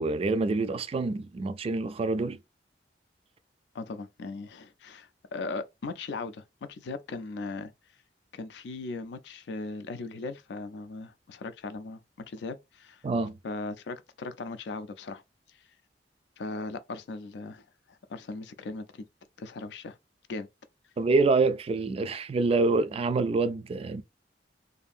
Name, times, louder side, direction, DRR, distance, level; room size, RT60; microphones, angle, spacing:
voice 1, 0.0-2.4 13.0-13.4 21.0-24.0, right 3 dB, 35° right, 0.3 m, -26 dB
voice 2, 3.7-7.7 8.3-12.0 12.3-13.0 13.4-15.2 16.4-19.1 19.4-20.0 20.3-20.5, left 3 dB, 70° left, 0.4 m, -38 dB
2.7 x 2.5 x 2.4 m
head